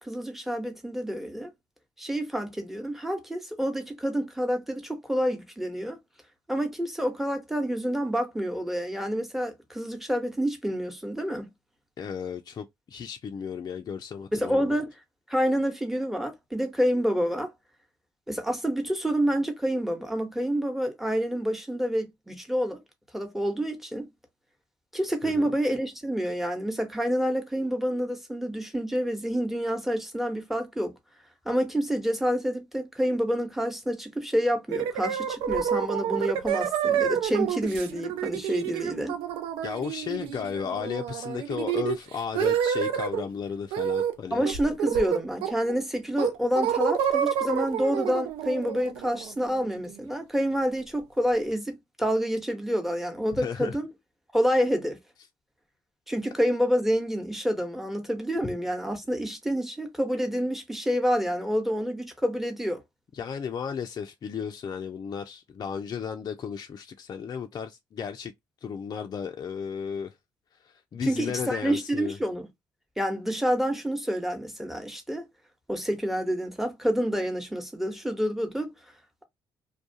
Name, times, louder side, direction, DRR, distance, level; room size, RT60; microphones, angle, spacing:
voice 1, 0.0-1.5 2.0-6.0 6.5-11.5 14.3-14.9 15.3-17.5 18.3-22.8 23.1-24.1 24.9-30.9 31.4-39.2 44.3-53.9 54.3-55.0 56.1-62.8 71.1-72.5 73.0-75.3 75.7-78.7, equal, 5° right, 1.0 m, -28 dB
voice 2, 12.0-14.8 25.2-25.5 39.6-44.4 53.4-53.8 58.4-58.5 63.1-68.3 68.6-70.1 70.6-72.2, left 7 dB, 45° left, 0.4 m, -34 dB
sound 1, 34.7-43.2 43.7-44.2 44.5-45.7 46.2-49.9, right 9 dB, 75° right, 0.4 m, -29 dB
2.3 x 2.2 x 2.7 m
supercardioid pair, 55°, 9 cm